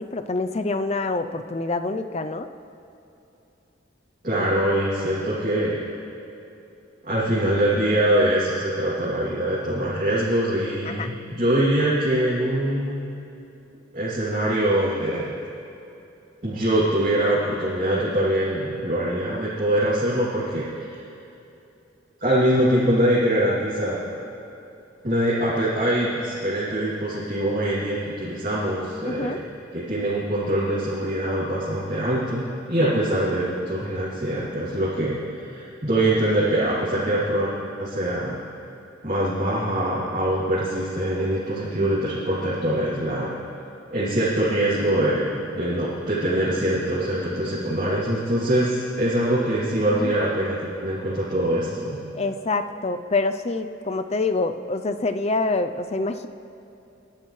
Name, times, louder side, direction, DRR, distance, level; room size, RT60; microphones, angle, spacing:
voice 1, 0.0-2.5 4.3-4.5 10.8-11.1 29.0-29.4 32.8-33.0 37.1-37.2 49.9-50.2 52.1-56.3, left 3 dB, 35° left, 9 dB, 0.5 m, -26 dB
voice 2, 4.2-5.8 7.0-13.0 13.9-15.3 16.4-21.0 22.2-24.0 25.0-29.5 29.7-37.5 37.8-38.4 39.0-43.4 43.9-52.0, right 1 dB, 40° right, -10 dB, 2.9 m, -23 dB
29.5 x 12.0 x 3.3 m, 2.8 s
head